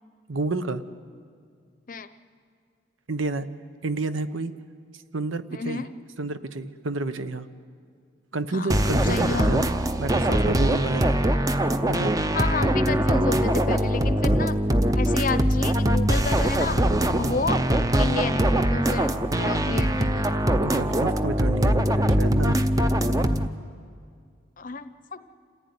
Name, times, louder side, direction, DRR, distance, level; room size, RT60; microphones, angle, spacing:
voice 1, 0.3-0.8 3.1-3.5 3.8-4.5 5.1-5.8 6.2-7.5 8.3-9.7 10.0-11.2 11.9-12.1 14.3-14.4 17.2-17.4 20.6-22.6, right 3 dB, 85° right, 11 dB, 1.0 m, -29 dB
voice 2, 5.5-5.9 8.5-8.7 9.0-9.5 12.3-14.6 14.9-16.8 17.2-17.6 18.0-20.3 24.6-25.2, left 4 dB, 40° left, 12 dB, 0.7 m, -31 dB
sound 1, 8.7-23.5, right 1 dB, 20° right, 0.6 m, -22 dB
27.5 x 14.5 x 9.6 m, 2.1 s
head